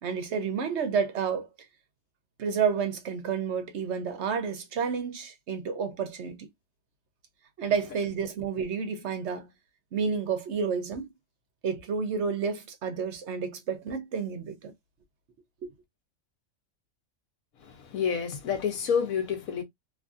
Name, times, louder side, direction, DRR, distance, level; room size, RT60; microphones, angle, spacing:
voice 1, 0.0-1.5 2.4-6.5 7.6-9.5 9.9-11.1 11.6-14.7 15.6-15.7, right 6 dB, 60° right, 0.9 m, -30 dB
voice 2, 17.6-19.6, left 7 dB, 90° left, 1.2 m, -29 dB
2.9 x 2.6 x 2.4 m
omnidirectional pair, 1.4 m